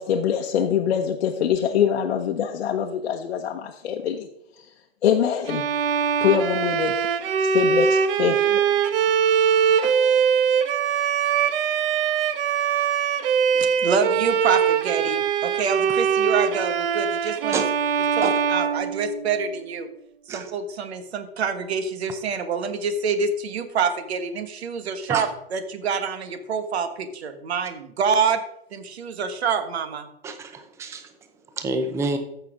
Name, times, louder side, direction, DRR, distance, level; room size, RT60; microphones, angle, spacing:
voice 1, 0.0-4.3 4.6-4.7 5.0-5.7 6.2-7.1 7.4-8.7 9.7-10.0, left 8 dB, 85° left, 2 dB, 1.1 m, -24 dB
Bowed string instrument, 5.5-19.5, right 7 dB, 60° right, 1.0 m, -22 dB
voice 2, 13.6-17.6 18.1-19.9 20.3-28.4 28.7-30.1, right 5 dB, 80° right, 9 dB, 1.5 m, -26 dB
voice 3, 30.2-31.1 31.6-32.2, right 3 dB, 10° right, 8 dB, 0.6 m, -27 dB
14.5 x 5.8 x 3.7 m, 0.77 s
hypercardioid pair, 155°, 32 cm